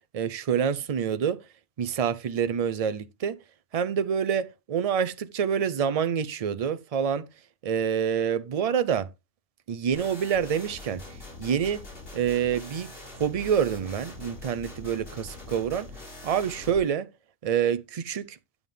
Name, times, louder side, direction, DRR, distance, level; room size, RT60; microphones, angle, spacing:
voice 1, 0.1-1.4 1.8-3.4 3.7-7.3 7.6-9.1 9.7-11.0 11.4-11.8 12.1-12.9 13.2-15.9 16.2-17.1 17.4-18.4, right 8 dB, 50° right, 0.4 m, -27 dB
sound 1, 9.9-16.8, left 2 dB, 50° left, 5.0 m, -43 dB
9.5 x 7.2 x 3.3 m
omnidirectional pair, 1.2 m